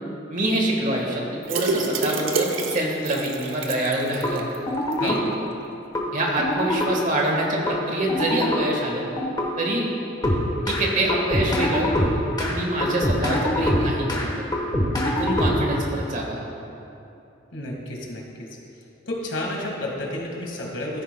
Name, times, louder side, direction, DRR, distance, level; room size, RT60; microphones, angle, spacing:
voice 1, 0.3-4.4 5.0-5.2 6.1-9.0 9.6-9.9 10.6-11.9 12.4-14.5 15.1-16.5, right 1 dB, 45° right, -1 dB, 1.4 m, -25 dB
sound 1, 1.4-4.6 4.9-5.0 5.3-5.4, right 4 dB, 85° right, 0.8 m, -28 dB
sound 2, 4.2-4.3 4.7-5.2 5.9-6.0 6.4-6.9 7.7-7.8 8.1-8.6 9.2-9.5 10.2-10.8 11.1-12.5 12.8-14.2 14.5-15.8, left 1 dB, 20° left, 1.1 m, -23 dB
voice 2, 17.5-18.5 19.1-21.0, left 1 dB, 70° left, -1 dB, 1.7 m, -31 dB
14.0 x 9.2 x 2.2 m, 2.8 s
head